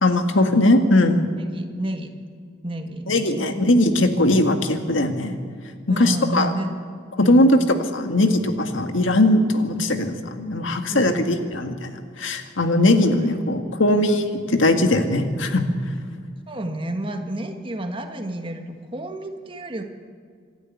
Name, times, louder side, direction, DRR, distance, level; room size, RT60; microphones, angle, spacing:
voice 1, 0.0-1.3 3.1-5.4 5.9-6.5 7.2-7.6 7.9-15.7, left 1 dB, 75° left, 6 dB, 1.8 m, -19 dB
voice 2, 1.4-2.1 2.6-3.5 5.9-6.7 7.2-7.5 10.9-11.3 13.2-13.3 16.5-19.8, right 1 dB, 25° right, 5 dB, 1.5 m, -30 dB
25.5 x 11.5 x 9.3 m, 2.1 s
head